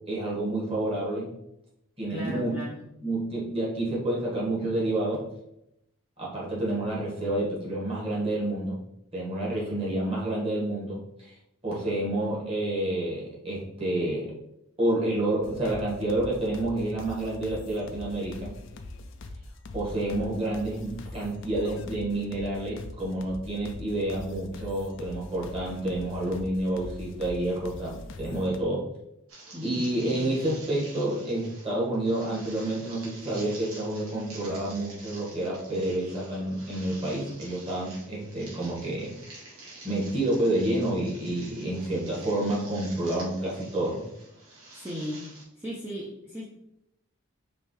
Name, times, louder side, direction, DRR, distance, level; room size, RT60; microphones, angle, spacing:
voice 1, 0.1-1.3 2.0-2.5 3.0-5.3 6.2-8.8 9.1-11.3 11.6-14.3 14.8-18.5 19.7-28.8 29.6-39.1 39.8-44.0, right 1 dB, 25° right, -5 dB, 1.5 m, -29 dB
voice 2, 2.1-2.8 29.5-29.9 44.7-45.3 45.6-46.4, equal, 10° right, -4 dB, 0.5 m, -36 dB
sound 1, 15.4-28.6, left 2 dB, 60° left, 0.4 m, -42 dB
sound 2, 29.3-45.4, right 2 dB, 85° right, 1.7 m, -48 dB
5.2 x 3.2 x 3.1 m, 0.82 s
head